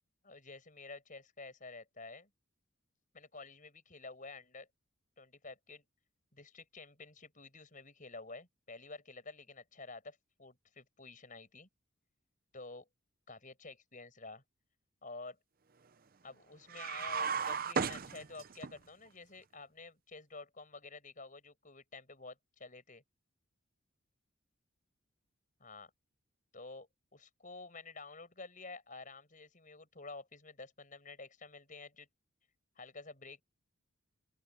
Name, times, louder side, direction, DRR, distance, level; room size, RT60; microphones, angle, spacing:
voice 1, 0.2-2.3 3.1-4.7 5.2-5.8 6.3-11.7 12.5-12.9 13.3-14.4 15.0-15.4 16.2-23.0 25.6-25.9 26.5-32.1 32.7-33.4, left 3 dB, 40° left, 6.5 m, -50 dB
sound 1, 16.7-18.7, right 6 dB, 45° right, 0.7 m, -35 dB
open air
head